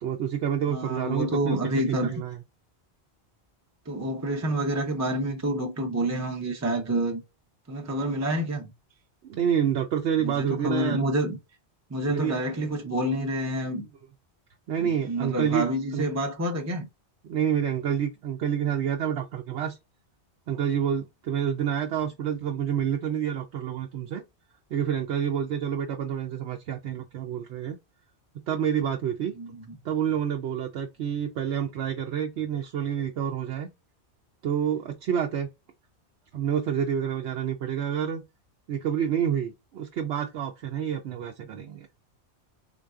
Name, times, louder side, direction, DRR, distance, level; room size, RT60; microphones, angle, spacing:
voice 1, 0.0-1.6 2.0-2.4 9.2-11.0 12.1-12.3 14.7-15.6 15.9-16.0 17.2-19.8 20.5-24.2 24.7-27.8 28.5-29.3 29.8-33.7 34.4-35.5 36.3-38.2 38.7-41.9, right 8 dB, 80° right, 0.9 m, -28 dB
voice 2, 0.7-2.1 3.9-7.2 7.7-8.7 10.2-11.4 11.9-13.8 14.8-16.9 29.4-29.8, right 1 dB, 20° right, 0.5 m, -28 dB
3.8 x 2.5 x 2.3 m
omnidirectional pair, 1.1 m